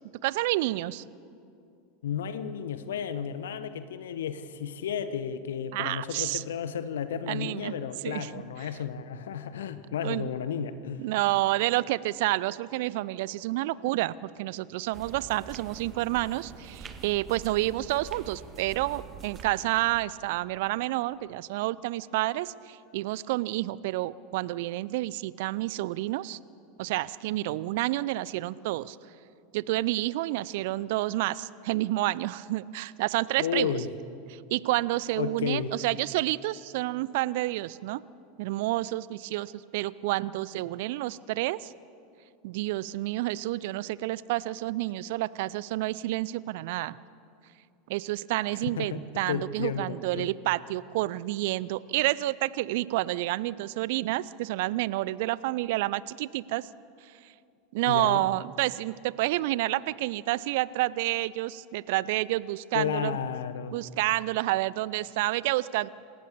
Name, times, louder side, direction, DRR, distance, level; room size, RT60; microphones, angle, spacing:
voice 1, 0.2-1.0 5.7-6.4 7.3-7.7 8.0-8.3 10.0-10.3 11.0-26.4 26.8-29.0 29.5-33.8 34.3-38.0 38.4-41.7 42.4-47.0 47.9-56.7 57.0-57.1 57.7-63.2 63.7-65.9, right 17 dB, 55° right, 20 dB, 0.5 m, -29 dB
voice 2, 2.0-11.0 33.4-33.9 35.2-35.7 48.8-49.0 49.3-50.3 57.9-58.3 62.7-63.8, left 8 dB, 65° left, 12 dB, 1.0 m, -32 dB
sound 1, 14.9-20.0, right 6 dB, 25° right, 1.7 m, -45 dB
27.5 x 15.5 x 6.9 m, 2.5 s
figure-of-eight pair, 85°, 0 cm